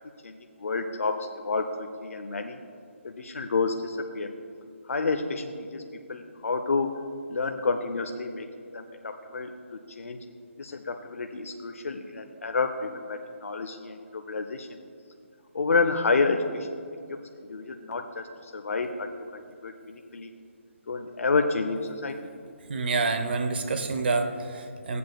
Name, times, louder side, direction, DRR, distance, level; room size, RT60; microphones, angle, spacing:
voice 1, 0.2-2.6 3.0-4.3 4.9-5.8 6.1-6.9 7.3-8.5 8.7-10.2 10.6-14.7 15.5-16.7 17.1-17.2 17.5-20.3 20.9-22.3, left 4 dB, 80° left, 5 dB, 0.6 m, -29 dB
voice 2, 22.7-25.0, right 3 dB, 50° right, 6 dB, 0.8 m, -27 dB
14.5 x 8.3 x 2.2 m, 2.5 s
hypercardioid pair, 165°, 7 cm